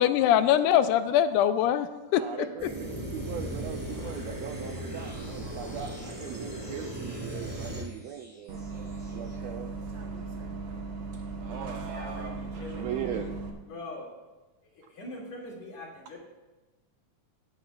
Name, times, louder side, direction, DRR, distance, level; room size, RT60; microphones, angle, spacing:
voice 1, 0.0-2.5, left 10 dB, 90° left, 11 dB, 2.1 m, -23 dB
voice 2, 2.1-8.6 9.1-9.7 11.5-12.0 12.5-13.3, right 9 dB, 80° right, 5 dB, 1.5 m, -39 dB
sound 1, 2.6-7.8, right 1 dB, 30° right, 0.3 m, -37 dB
sound 2, 3.4-9.4, left 1 dB, 25° left, 3.2 m, -52 dB
Bus, 8.5-13.5, right 4 dB, 60° right, 1.1 m, -37 dB
voice 3, 11.9-13.3 13.7-14.1 14.9-16.2, left 2 dB, 60° left, -3 dB, 3.6 m, -42 dB
17.0 x 10.0 x 2.4 m, 1.1 s
omnidirectional pair, 3.5 m